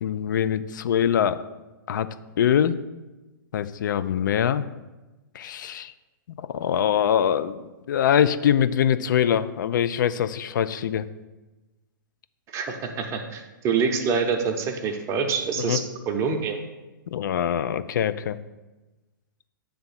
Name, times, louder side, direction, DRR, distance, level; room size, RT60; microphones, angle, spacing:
voice 1, 0.0-1.4 1.9-2.1 2.4-2.8 3.5-4.7 5.3-5.9 6.4-11.1 15.6-15.8 17.1-18.4, left 9 dB, 65° left, 13 dB, 0.4 m, -23 dB
voice 2, 12.5-16.6, right 5 dB, 25° right, 4 dB, 0.7 m, -26 dB
7.7 x 3.5 x 5.7 m, 1.1 s
hypercardioid pair, 130°, 11 cm